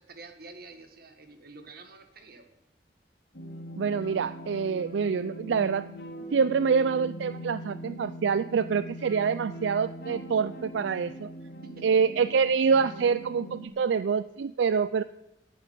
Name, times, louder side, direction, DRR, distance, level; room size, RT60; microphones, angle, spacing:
voice 1, 0.0-2.5 11.6-11.9, right 3 dB, 60° right, 7 dB, 1.7 m, -48 dB
sound 1, 3.3-13.7, right 1 dB, 60° left, 1.8 m, -41 dB
voice 2, 3.8-5.9 6.3-11.3 11.8-15.0, right 6 dB, 85° right, 15 dB, 0.4 m, -26 dB
11.0 x 8.6 x 9.2 m, 0.88 s
head